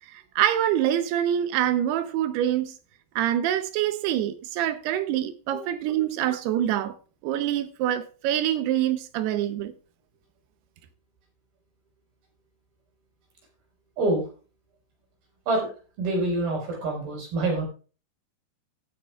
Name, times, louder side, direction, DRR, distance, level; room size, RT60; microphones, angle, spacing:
voice 1, 0.1-2.7 3.2-7.0 7.2-9.7, right 11 dB, 80° right, 2.7 m, -25 dB
voice 2, 14.0-14.3 15.5-15.7 16.0-17.6, right 2 dB, 60° right, 6.3 m, -26 dB
16.0 x 9.5 x 2.3 m
omnidirectional pair, 4.9 m